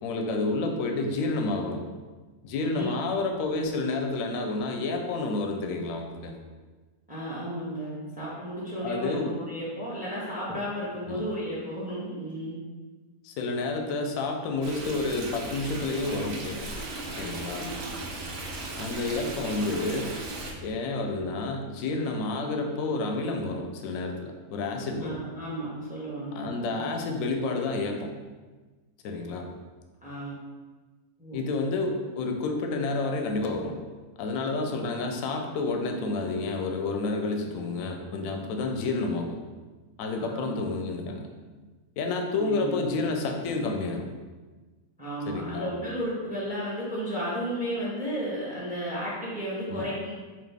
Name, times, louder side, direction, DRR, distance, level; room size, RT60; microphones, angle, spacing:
voice 1, 0.0-1.8 2.4-6.3 8.8-9.4 11.1-11.2 13.2-16.7 17.2-17.7 18.8-20.1 20.6-25.2 26.3-28.1 29.0-29.5 31.3-33.8 34.2-39.4 40.0-41.3 42.0-44.1 45.3-45.7 49.7-49.9, left 3 dB, 75° left, 3 dB, 0.9 m, -30 dB
voice 2, 7.1-12.6 17.6-17.9 25.0-27.1 30.0-30.4 31.2-31.5 40.2-40.6 42.3-42.9 45.0-50.1, equal, 5° right, -6 dB, 0.8 m, -34 dB
Stream, 14.6-20.5, right 2 dB, 70° right, 1.1 m, -37 dB
4.0 x 2.7 x 3.4 m, 1.3 s
omnidirectional pair, 1.5 m